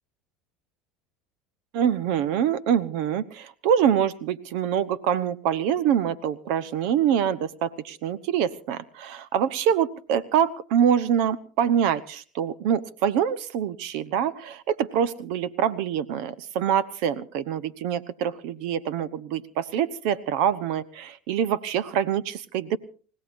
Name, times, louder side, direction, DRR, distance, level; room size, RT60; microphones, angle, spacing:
voice 1, 1.7-22.8, right 9 dB, 70° right, 17 dB, 0.9 m, -25 dB
30.0 x 16.5 x 2.6 m, 0.40 s
hypercardioid pair, 90°, 0 cm